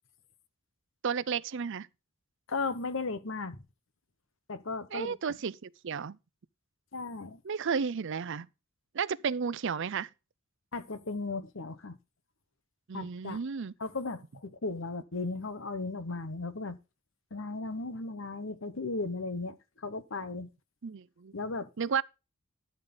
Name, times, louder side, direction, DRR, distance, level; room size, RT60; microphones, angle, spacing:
voice 1, 1.0-1.9 4.9-6.2 7.4-8.5 8.9-10.1 12.9-13.7 20.8-21.3 21.8-22.0, right 6 dB, 60° right, 0.5 m, -33 dB
voice 2, 2.5-3.6 4.5-5.2 6.9-7.4 10.7-12.0 12.9-13.4 13.8-16.8 17.3-20.5 21.3-21.7, left 3 dB, 65° left, 1.1 m, -36 dB
12.0 x 6.5 x 3.9 m
head